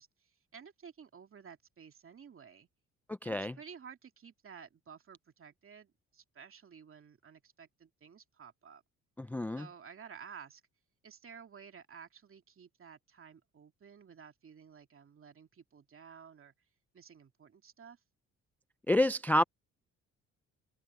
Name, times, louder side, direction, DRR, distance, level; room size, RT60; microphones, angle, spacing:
voice 1, 0.0-2.7 3.2-8.8 9.6-10.6 11.0-16.5 16.9-18.0, right 7 dB, 45° right, 2.5 m, -53 dB
voice 2, 3.2-3.5 9.2-9.7 18.9-19.4, left 1 dB, 5° left, 0.3 m, -28 dB
open air
cardioid pair, 90°, 30 cm